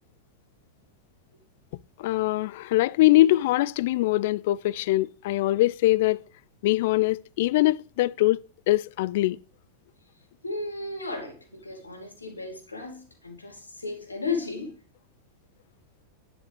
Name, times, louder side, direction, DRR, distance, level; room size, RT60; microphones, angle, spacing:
voice 1, 2.0-6.2 6.6-9.4, left 17 dB, 50° left, 0.4 m, -23 dB
voice 2, 10.4-14.8, left 3 dB, 80° left, 2.7 m, -34 dB
10.5 x 9.7 x 3.5 m
figure-of-eight pair, 90°, 0 cm